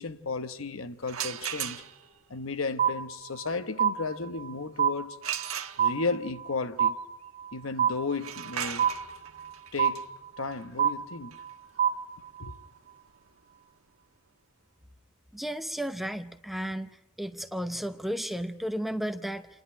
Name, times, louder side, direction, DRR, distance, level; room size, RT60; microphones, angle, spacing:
voice 1, 0.0-1.8 2.3-5.2 5.8-7.0 7.5-8.9 9.7-10.1 10.4-11.4 12.4-12.5, left 4 dB, 75° left, 1.1 m, -34 dB
sound 1, 1.0-2.2 5.2-6.2 8.1-13.8, right 9 dB, 85° right, 1.3 m, -38 dB
sound 2, 2.8-3.5 3.8-4.5 4.8-5.5 5.8-6.5 6.8-7.5 7.8-8.5 8.8-9.5 9.8-10.5 10.8-11.5 11.8-12.5, right 8 dB, 40° right, 1.4 m, -27 dB
voice 2, 15.3-16.9 17.2-19.5, equal, ahead, 0.7 m, -33 dB
28.0 x 11.0 x 9.9 m
head